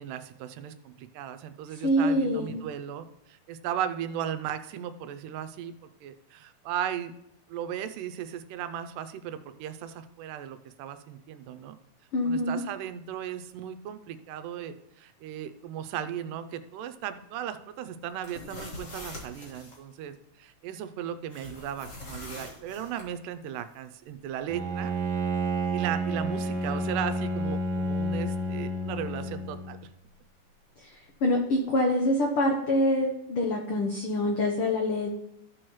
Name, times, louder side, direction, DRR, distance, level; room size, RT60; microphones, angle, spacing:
voice 1, 0.0-5.7 6.0-7.1 7.5-11.7 12.2-24.9 25.7-29.8, right 10 dB, 80° right, 10 dB, 2.1 m, -36 dB
voice 2, 1.8-2.6 12.1-12.6 31.2-35.1, left 1 dB, 85° left, 1 dB, 1.2 m, -25 dB
sound 1, 18.1-19.8 21.3-23.1, left 1 dB, 40° left, 1.1 m, -43 dB
Bowed string instrument, 24.5-29.8, right 1 dB, 60° right, 2.1 m, -30 dB
14.0 x 6.3 x 3.1 m, 0.81 s
omnidirectional pair, 3.9 m